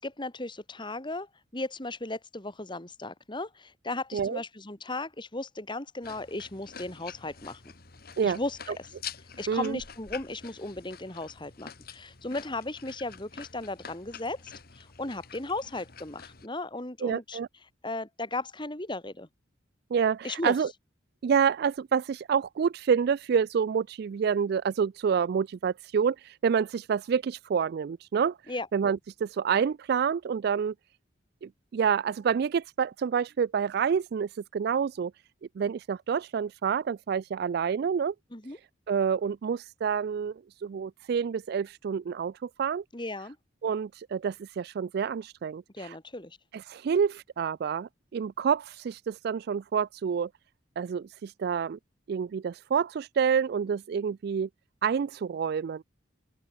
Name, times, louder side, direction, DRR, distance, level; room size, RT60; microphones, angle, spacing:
voice 1, 0.0-7.6 8.2-8.9 9.4-17.4 17.8-19.3 20.2-20.6 28.5-28.7 38.3-38.6 42.9-43.4 45.7-46.4, left 2 dB, 25° left, 2.4 m, -36 dB
sound 1, 6.0-16.5, left 7 dB, 50° left, 2.0 m, -47 dB
voice 2, 9.5-9.8 17.0-17.5 19.9-20.7 21.2-28.4 28.7-30.7 31.4-35.1 35.6-38.1 38.9-40.3 40.6-42.8 43.6-46.0 46.5-50.3 50.8-51.8 52.1-54.5 54.8-55.8, right 7 dB, 55° right, 0.3 m, -28 dB
open air
head